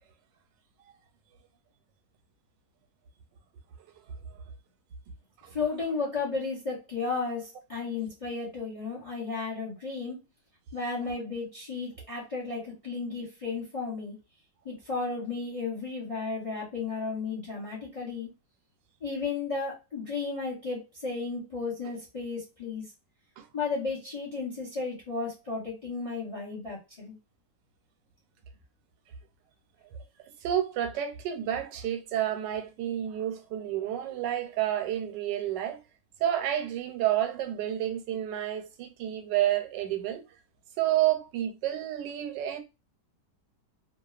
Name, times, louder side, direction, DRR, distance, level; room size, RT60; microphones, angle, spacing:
voice 1, 5.5-10.2 10.7-14.2 14.6-18.3 19.0-22.8 23.5-27.2, left 4 dB, 35° left, 0.5 m, -34 dB
voice 2, 30.4-35.8 36.2-40.2 40.8-42.6, right 12 dB, 90° right, 1.2 m, -30 dB
2.8 x 2.2 x 2.3 m
omnidirectional pair, 1.9 m